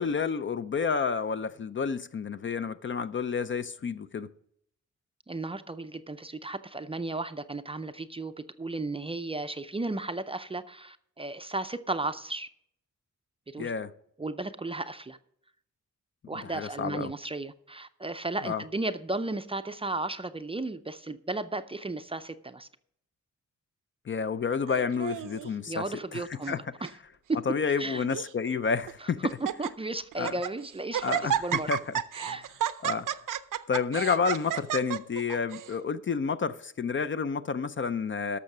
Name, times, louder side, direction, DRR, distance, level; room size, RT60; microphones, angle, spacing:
voice 1, 0.0-4.3 13.6-13.9 16.4-17.1 18.4-18.6 24.1-25.8 26.1-26.6 27.5-29.2 30.2-30.3 31.0-32.0 32.3-32.4 32.8-33.1 33.7-38.4, left 5 dB, 40° left, 0.4 m, -30 dB
voice 2, 5.3-12.5 13.5-13.7 14.2-15.2 16.3-22.7 25.7-26.6 27.3-27.4 27.8-28.0 29.0-29.1 29.4-31.7 32.1-32.5, right 2 dB, 20° right, 0.4 m, -34 dB
Laughter, 24.7-25.5 26.2-26.6 26.8-26.9 27.7-28.3 28.9-29.0 29.3-29.7 30.1-30.5 30.9-35.7, right 10 dB, 85° right, 0.6 m, -32 dB
12.0 x 6.7 x 5.9 m
wide cardioid pair, 130°, 31 cm